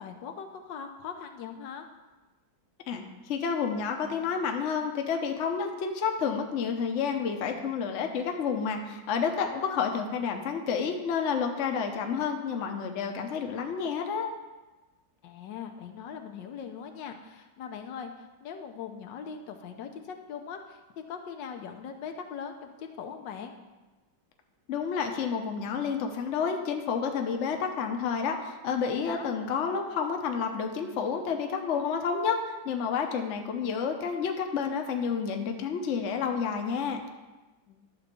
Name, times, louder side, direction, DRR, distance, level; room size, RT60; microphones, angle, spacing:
voice 1, 0.0-1.9 9.6-9.9 15.2-23.5 28.9-29.3 37.7-37.9, left 7 dB, 75° left, 5 dB, 1.4 m, -41 dB
voice 2, 2.9-14.3 24.7-37.0, left 6 dB, 50° left, 4 dB, 1.0 m, -30 dB
11.5 x 4.0 x 6.8 m, 1.2 s
omnidirectional pair, 2.0 m